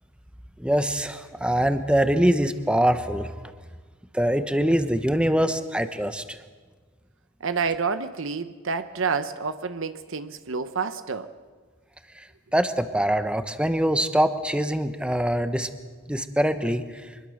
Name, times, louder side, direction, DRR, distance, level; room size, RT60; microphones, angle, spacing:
voice 1, 0.6-3.3 4.1-6.4 12.5-15.7 16.1-16.8, equal, 5° right, 9 dB, 1.1 m, -23 dB
voice 2, 7.4-11.3, right 5 dB, 65° right, 11 dB, 0.9 m, -28 dB
24.5 x 21.5 x 6.5 m, 1.4 s
head